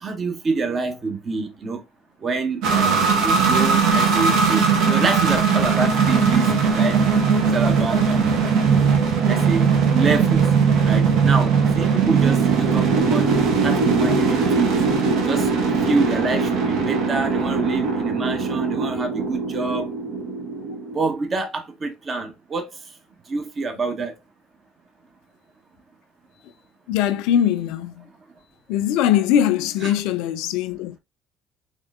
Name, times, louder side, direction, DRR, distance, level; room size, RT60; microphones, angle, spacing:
voice 1, 0.0-1.8 2.2-7.1 7.4-8.3 9.3-10.5 10.8-14.8 15.3-15.5 15.8-19.9 20.9-22.7 23.3-24.1 29.8-29.9, right 4 dB, 40° right, 1.0 m, -27 dB
sound 1, 2.6-21.1, right 5 dB, 70° right, 0.9 m, -19 dB
voice 2, 26.9-28.0 28.7-31.0, left 10 dB, 70° left, 0.4 m, -21 dB
3.6 x 3.2 x 2.4 m
hypercardioid pair, 60°, 0 cm